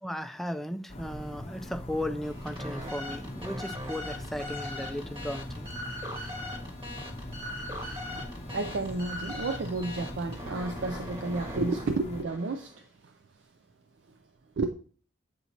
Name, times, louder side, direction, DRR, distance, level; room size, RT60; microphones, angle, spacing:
voice 1, 0.0-5.7, left 1 dB, ahead, 0.3 m, -36 dB
sound 1, 0.9-12.2, left 1 dB, 35° left, 0.7 m, -41 dB
sound 2, 2.2-12.8, left 1 dB, 25° right, 1.3 m, -41 dB
voice 2, 8.1-13.2 14.6-14.7, right 3 dB, 65° right, 0.5 m, -32 dB
8.1 x 4.3 x 2.8 m
head